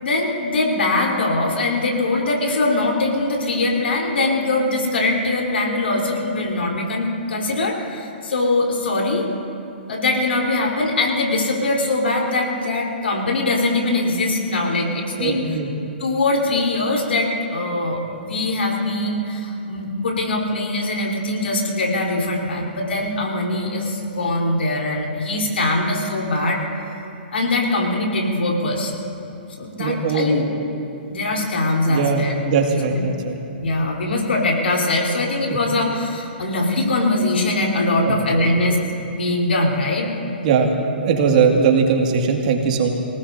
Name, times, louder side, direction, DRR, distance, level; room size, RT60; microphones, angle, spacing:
voice 1, 0.0-9.3 9.9-15.4 16.0-26.6 27.3-29.0 29.6-30.5 31.1-32.4 32.9-33.0 33.6-38.8 39.1-40.1, left 2 dB, 80° left, -1 dB, 3.7 m, -22 dB
voice 2, 15.2-15.7 29.8-30.4 31.8-33.4 38.0-38.5 40.4-42.9, right 5 dB, 50° right, 1 dB, 2.1 m, -20 dB
26.5 x 18.5 x 2.7 m, 2.8 s
hypercardioid pair, 145°, 6 cm